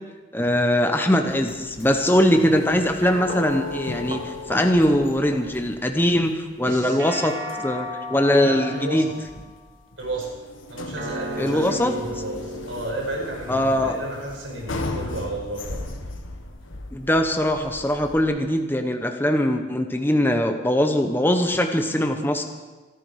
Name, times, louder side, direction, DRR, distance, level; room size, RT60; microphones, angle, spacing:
voice 1, 0.3-7.4 7.6-9.1 11.4-11.9 13.5-13.9 16.9-22.4, left 1 dB, 10° left, 5 dB, 0.9 m, -21 dB
sound 1, 1.2-18.2, left 2 dB, 85° left, 1.6 m, -38 dB
sound 2, 3.0-5.6 7.0-9.5 11.0-13.6, left 1 dB, 60° right, 2.7 m, -35 dB
Run, 3.2-5.9 6.1-6.3 7.6-7.8 8.1-8.2 8.7-8.8 9.1-9.3 9.9-10.0, right 1 dB, 30° right, 1.6 m, -39 dB
voice 2, 6.6-7.0 8.4-9.0 10.0-10.3 10.7-15.8, right 1 dB, 80° right, -1 dB, 5.6 m, -32 dB
26.5 x 9.8 x 4.8 m, 1.3 s
head